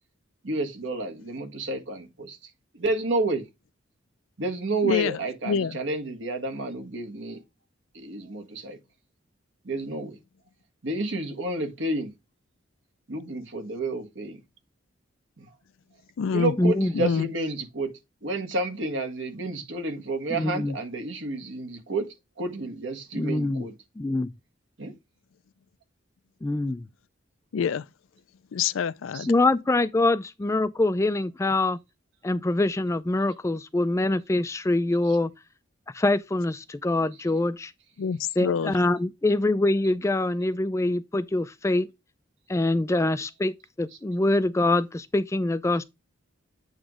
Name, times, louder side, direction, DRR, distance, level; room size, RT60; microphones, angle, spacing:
voice 1, 0.4-3.5 4.4-7.4 7.9-8.8 9.6-10.2 10.8-12.1 13.1-14.4 15.4-15.5 16.3-23.7 24.8-24.9 29.1-29.3 35.0-35.2 37.1-37.3 39.8-39.9 43.9-44.0, right 2 dB, 70° right, 1.5 m, -30 dB
voice 2, 5.4-5.8 16.2-16.5 16.9-17.3 27.5-27.9 28.5-29.3 38.0-38.7, left 6 dB, 80° left, 0.4 m, -26 dB
voice 3, 16.6-16.9 20.3-20.7 23.2-23.6 24.0-24.3 26.4-26.9 29.3-31.8 32.2-35.3 35.9-37.7 38.4-41.9 42.5-45.8, left 2 dB, 15° left, 0.3 m, -24 dB
8.9 x 3.1 x 4.8 m
head